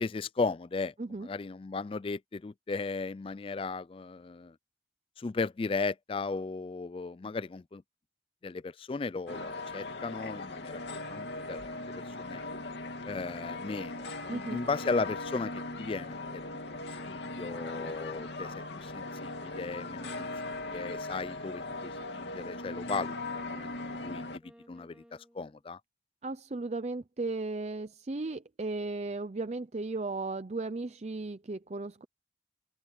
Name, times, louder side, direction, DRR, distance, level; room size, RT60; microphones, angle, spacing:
voice 1, 0.0-0.9 1.2-4.5 5.2-7.8 8.4-10.8 11.1-12.4 13.1-18.5 18.8-24.4 24.7-25.8, left 4 dB, 30° left, 0.3 m, -36 dB
sound 1, 9.3-24.4, left 2 dB, 75° left, 2.7 m, -39 dB
voice 2, 14.3-14.6 26.2-32.0, right 3 dB, 40° right, 0.5 m, -35 dB
sound 2, 15.6-25.6, equal, 5° right, 3.6 m, -60 dB
open air
head